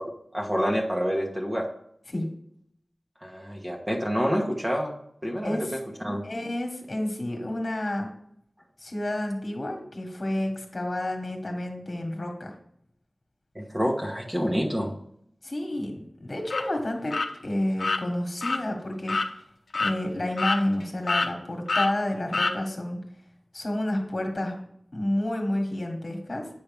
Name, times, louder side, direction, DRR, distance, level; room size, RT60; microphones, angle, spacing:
voice 1, 0.3-1.7 3.2-4.9 5.2-6.2 13.5-14.9, equal, 20° right, -1 dB, 1.2 m, -27 dB
voice 2, 5.4-5.8 6.2-8.1 8.8-12.5 15.4-19.2 19.8-23.0 23.5-24.6 24.9-26.5, left 1 dB, 45° left, 3 dB, 1.5 m, -30 dB
sound 1, 16.5-16.6 17.1-17.3 17.8-18.0 18.4-18.6 19.1-19.3 19.7-19.9 20.4-20.8 21.1-21.3 21.7-21.9 22.3-22.5, left 3 dB, 85° left, 0.6 m, -26 dB
8.6 x 5.6 x 3.5 m, 0.70 s
wide cardioid pair, 80°, 0 cm